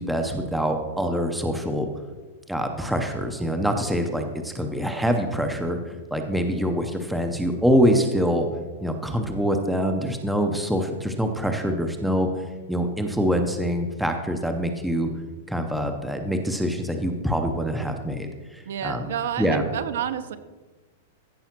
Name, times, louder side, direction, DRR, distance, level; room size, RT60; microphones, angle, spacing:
voice 1, 0.0-1.9 2.5-8.5 8.8-12.3 12.7-15.1 15.5-19.1 19.4-19.7, equal, ahead, 5 dB, 0.6 m, -25 dB
voice 2, 18.7-20.4, right 9 dB, 65° right, 10 dB, 0.8 m, -29 dB
15.0 x 5.4 x 5.9 m, 1.3 s
supercardioid pair, 180°, 0 cm